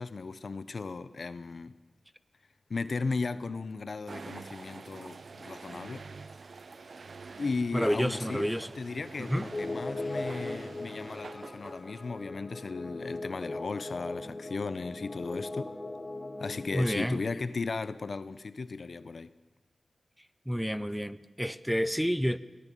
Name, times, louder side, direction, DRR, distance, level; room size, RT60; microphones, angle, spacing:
voice 1, 0.0-1.7 2.7-6.1 7.4-8.5 8.8-15.7 16.4-19.3, left 4 dB, 60° left, 1.0 m, -36 dB
sound 1, 4.1-12.3, right 4 dB, 60° right, 0.9 m, -46 dB
voice 2, 7.7-8.7 9.2-9.5 16.7-17.2 20.5-22.4, equal, ahead, 1.0 m, -29 dB
sound 2, 9.5-17.1, left 2 dB, 30° left, 3.3 m, -39 dB
23.0 x 18.0 x 8.6 m
wide cardioid pair, 75°, 0 cm